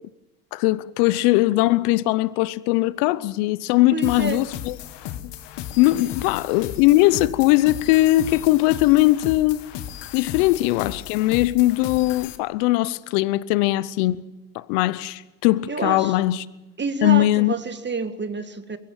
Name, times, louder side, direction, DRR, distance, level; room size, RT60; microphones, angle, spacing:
voice 1, 0.5-4.8 5.8-9.7 10.1-14.2 14.5-16.4 17.0-17.5, left 17 dB, 70° left, 1.0 m, -20 dB
voice 2, 3.9-4.4 15.7-16.2 16.8-18.8, right 4 dB, 20° right, 1.8 m, -28 dB
sound 1, 4.0-12.4, left 11 dB, 55° left, 1.7 m, -36 dB
23.0 x 15.5 x 9.2 m
hypercardioid pair, 70°, 49 cm